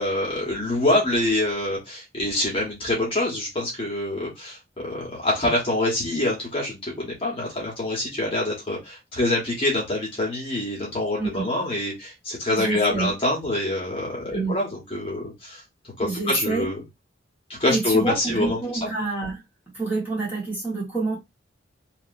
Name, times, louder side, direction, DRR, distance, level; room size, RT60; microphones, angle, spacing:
voice 1, 0.0-15.6 16.0-16.8 17.5-18.9, left 1 dB, 30° left, 1.2 m, -25 dB
voice 2, 11.2-11.5 12.5-13.1 14.3-14.5 16.0-16.7 17.7-19.4 19.7-21.2, right 3 dB, 10° right, 1.4 m, -27 dB
2.8 x 2.8 x 2.5 m
head